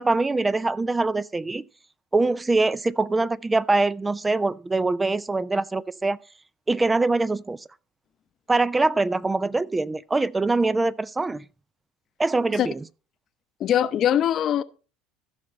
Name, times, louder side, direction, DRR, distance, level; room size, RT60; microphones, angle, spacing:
voice 1, 0.0-1.6 2.1-6.2 6.7-7.6 8.5-11.4 12.2-12.8, right 3 dB, 15° right, 0.4 m, -23 dB
voice 2, 13.6-14.6, left 10 dB, 50° left, 0.7 m, -21 dB
15.0 x 5.7 x 4.2 m
hypercardioid pair, 75°, 0 cm